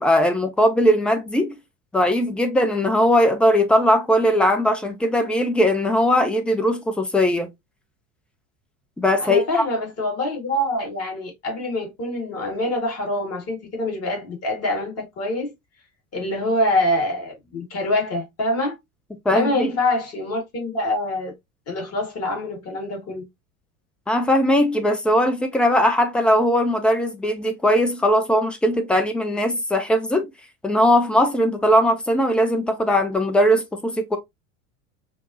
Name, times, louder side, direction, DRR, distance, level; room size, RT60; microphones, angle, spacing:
voice 1, 0.0-1.6 1.9-7.5 9.0-9.6 19.3-19.7 24.1-30.3 30.6-34.2, equal, 5° left, 0.5 m, -19 dB
voice 2, 9.2-15.5 16.1-18.8 19.3-21.3 21.7-23.2, left 1 dB, 35° left, 2.1 m, -25 dB
5.1 x 2.1 x 2.7 m
figure-of-eight pair, 75°, 42 cm